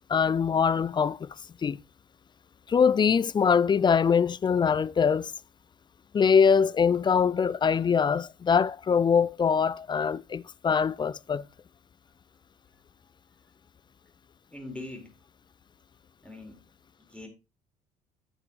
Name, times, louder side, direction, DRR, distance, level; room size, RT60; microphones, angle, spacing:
voice 1, 0.1-1.3 1.6-1.8 2.7-5.3 6.1-11.4, left 6 dB, 20° left, 0.4 m, -23 dB
voice 2, 14.5-15.1 16.2-16.6 17.1-17.3, left 2 dB, 5° left, 4.6 m, -41 dB
11.0 x 8.7 x 3.1 m
figure-of-eight pair, 55°, 20 cm